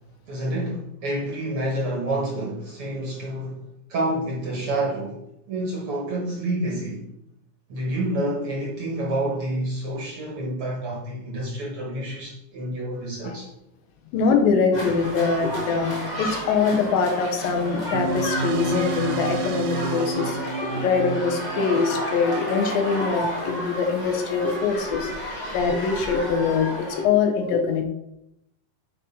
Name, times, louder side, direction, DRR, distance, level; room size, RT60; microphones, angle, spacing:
voice 1, 0.3-3.6 3.9-5.2 5.5-7.0 7.7-13.5, right 1 dB, 55° right, -2 dB, 1.7 m, -28 dB
voice 2, 14.1-27.8, left 5 dB, 90° left, 4 dB, 2.9 m, -23 dB
sound 1, 14.7-27.0, equal, 50° left, 0.5 m, -32 dB
sound 2, 17.9-22.7, right 5 dB, 75° right, 2.2 m, -30 dB
8.1 x 4.3 x 5.5 m, 0.80 s
omnidirectional pair, 4.0 m